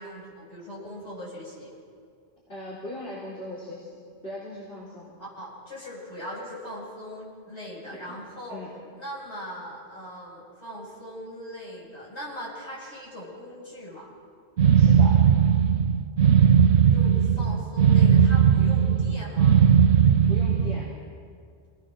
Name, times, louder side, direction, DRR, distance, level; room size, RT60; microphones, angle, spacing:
voice 1, 0.0-1.7 5.2-8.6 8.9-14.1 16.9-19.6, equal, 75° left, -5 dB, 8.0 m, -40 dB
voice 2, 2.5-5.1 7.9-8.1 8.5-8.7 14.7-15.2 20.3-20.9, left 1 dB, 55° left, -7 dB, 4.3 m, -39 dB
sound 1, 14.6-20.9, right 8 dB, 70° right, 1.0 m, -18 dB
28.0 x 19.5 x 6.3 m, 2.3 s
omnidirectional pair, 1.2 m